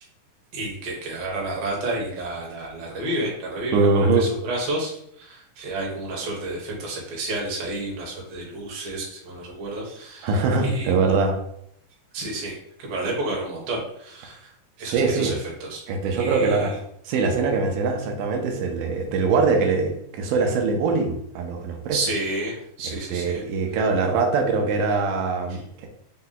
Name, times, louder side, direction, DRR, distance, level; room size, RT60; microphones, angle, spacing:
voice 1, 0.5-11.0 12.1-14.5 14.8-15.8 16.2-16.7 21.9-23.4 25.5-25.6, right 2 dB, 60° right, -2 dB, 2.0 m, -31 dB
voice 2, 3.7-4.2 10.2-11.4 14.8-15.3 15.9-16.8 17.1-22.0 23.1-25.9, right 4 dB, 90° right, 2 dB, 2.1 m, -22 dB
5.4 x 2.2 x 3.8 m, 0.71 s
omnidirectional pair, 3.6 m